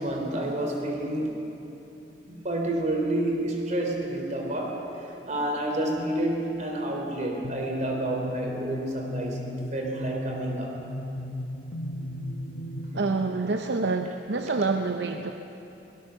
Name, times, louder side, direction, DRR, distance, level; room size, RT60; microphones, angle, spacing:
voice 1, 0.0-1.4 2.3-10.8, right 1 dB, 45° right, 1 dB, 3.7 m, -29 dB
sound 1, 7.4-13.0, left 1 dB, 90° left, 1.1 m, -36 dB
voice 2, 12.9-15.3, right 3 dB, 70° right, 6 dB, 0.7 m, -27 dB
22.0 x 19.0 x 7.0 m, 3.0 s
head